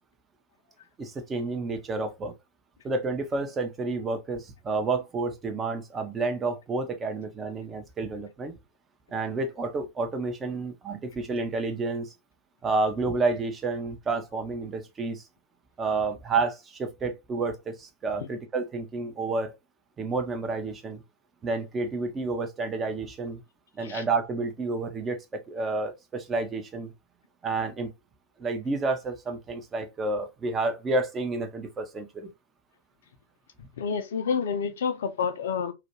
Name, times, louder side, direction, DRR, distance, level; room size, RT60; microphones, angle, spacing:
voice 1, 1.0-2.3 2.8-8.5 9.1-12.1 12.6-15.2 15.8-19.5 20.0-21.0 21.4-23.4 23.8-25.2 25.5-26.9 27.4-27.9 28.4-32.3, right 3 dB, 20° right, 0.6 m, -30 dB
voice 2, 33.8-35.7, left 6 dB, 60° left, 0.4 m, -28 dB
2.4 x 2.2 x 2.9 m
figure-of-eight pair, 90°, 0 cm